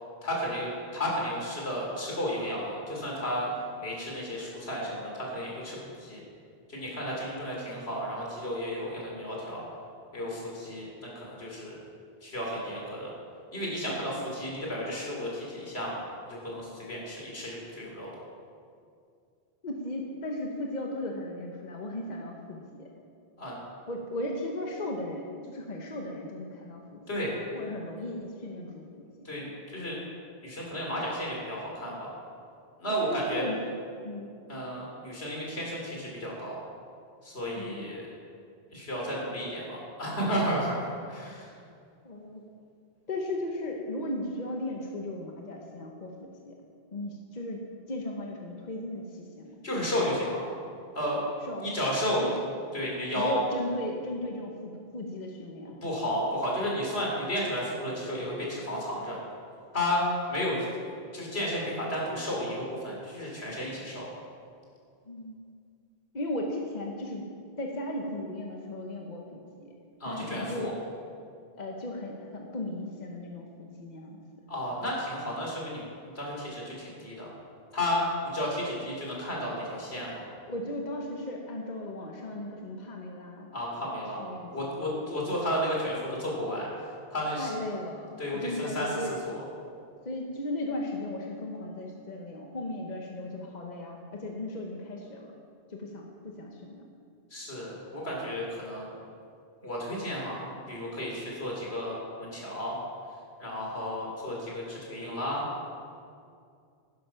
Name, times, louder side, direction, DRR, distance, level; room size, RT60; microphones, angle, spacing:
voice 1, 0.2-3.5 3.8-6.2 6.7-9.6 10.1-11.8 12.2-13.1 13.5-15.9 16.3-18.1 23.4-23.5 27.1-27.3 29.2-30.0 30.4-32.1 32.8-33.4 34.5-36.6 37.2-38.1 38.7-41.5 49.6-50.4 50.9-51.2 51.6-52.4 52.7-53.4 55.8-59.2 59.7-60.0 60.3-64.1 70.0-70.7 74.5-75.8 76.1-77.3 77.7-80.2 83.5-84.2 84.5-86.7 87.1-87.5 88.2-89.4 97.3-98.9 99.6-102.7 103.4-105.4, equal, 75° left, -3 dB, 3.4 m, -33 dB
voice 2, 19.6-22.9 23.9-27.0 27.5-29.3 33.0-33.6 34.0-34.3 37.5-37.9 42.0-42.4 43.1-46.1 46.5-46.6 46.9-47.6 47.9-49.6 51.4-51.7 52.2-52.4 53.1-55.7 65.1-65.4 66.1-67.3 67.6-69.7 70.0-70.7 71.6-74.2 80.5-83.5 83.8-84.7 87.4-89.1 90.0-95.3 95.7-96.8, left 1 dB, 45° left, 0 dB, 1.2 m, -36 dB
11.5 x 10.5 x 5.7 m, 2.3 s
omnidirectional pair, 1.1 m